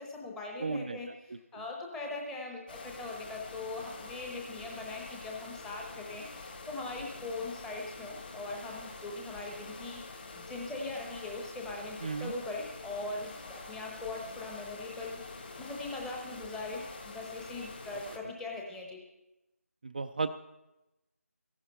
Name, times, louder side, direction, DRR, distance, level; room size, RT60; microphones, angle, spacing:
voice 1, 0.0-19.0, left 2 dB, 5° left, -1 dB, 0.9 m, -41 dB
voice 2, 0.6-1.0 1.3-1.6 12.0-12.3 18.1-18.2 19.8-20.3, right 4 dB, 35° right, 8 dB, 0.4 m, -35 dB
sound 1, 2.7-18.2, left 3 dB, 35° left, 1.6 m, -46 dB
15.0 x 11.0 x 5.5 m, 0.96 s
figure-of-eight pair, 165°, 8 cm